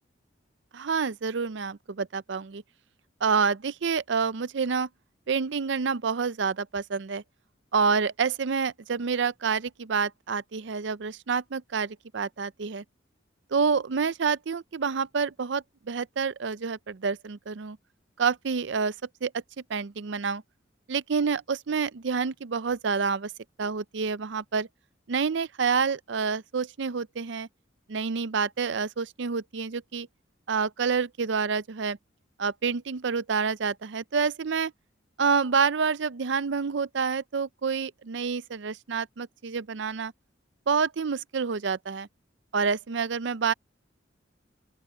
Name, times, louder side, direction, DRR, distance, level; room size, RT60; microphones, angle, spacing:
voice 1, 0.7-2.6 3.2-4.9 5.3-7.2 7.7-12.8 13.5-17.8 18.2-18.9 19.2-19.4 19.7-20.4 20.9-23.3 23.6-24.7 25.1-27.5 27.9-30.1 30.5-32.0 32.4-34.7 35.2-40.1 40.7-42.1 42.5-43.5, right 5 dB, 65° right, 0.5 m, -28 dB
open air
head